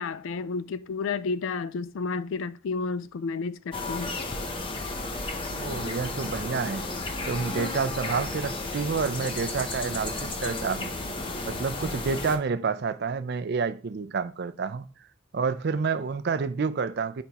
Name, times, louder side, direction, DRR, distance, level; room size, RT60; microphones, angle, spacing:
voice 1, 0.0-4.2, left 4 dB, 70° left, 0.4 m, -31 dB
sound 1, 3.7-12.4, left 2 dB, 25° left, 0.7 m, -33 dB
voice 2, 5.5-6.9 7.3-10.9 11.5-14.9 15.3-17.2, right 5 dB, 50° right, 0.4 m, -29 dB
10.0 x 3.4 x 2.9 m
head